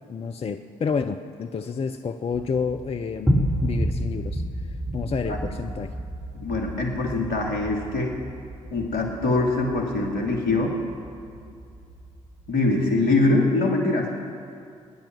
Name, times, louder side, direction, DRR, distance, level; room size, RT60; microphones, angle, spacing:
voice 1, 0.1-5.9, left 5 dB, 35° left, 8 dB, 0.7 m, -30 dB
sound 1, 2.3-12.5, equal, ahead, 4.5 m, -31 dB
voice 2, 6.3-8.1 8.7-10.8 12.5-14.1, left 2 dB, 70° left, 1 dB, 2.6 m, -23 dB
21.0 x 10.5 x 6.1 m, 2.4 s
figure-of-eight pair, 40°, 17 cm